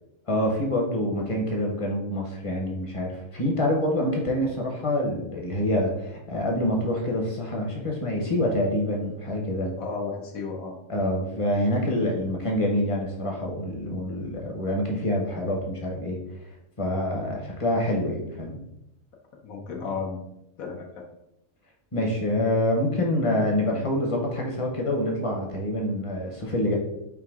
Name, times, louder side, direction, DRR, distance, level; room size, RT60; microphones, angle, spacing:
voice 1, 0.3-9.7 10.9-16.2 16.8-18.6 21.9-26.8, left 1 dB, 30° left, 0 dB, 0.7 m, -26 dB
voice 2, 9.8-10.7 19.4-20.2 20.6-20.9, left 4 dB, 80° left, -1 dB, 1.2 m, -33 dB
5.1 x 2.7 x 3.5 m, 0.83 s
omnidirectional pair, 1.4 m